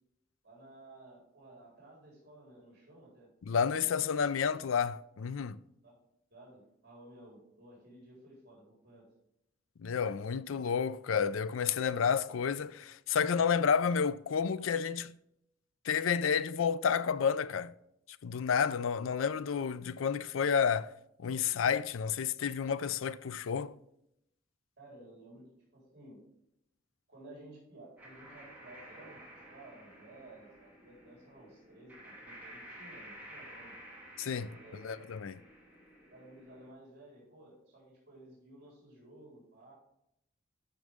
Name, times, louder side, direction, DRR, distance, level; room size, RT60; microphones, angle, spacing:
voice 1, 0.4-3.3 5.8-6.0 6.3-9.1 24.8-25.5 25.7-26.2 27.1-33.8 34.4-35.0 36.1-39.7, right 1 dB, 55° right, 3.9 m, -55 dB
voice 2, 3.5-5.6 9.8-15.1 15.8-17.7 18.2-20.9 21.2-23.8 34.2-34.5 34.8-35.4, left 6 dB, 90° left, 0.4 m, -30 dB
sound 1, 28.0-36.7, right 1 dB, 10° right, 2.1 m, -52 dB
12.5 x 6.2 x 3.5 m
head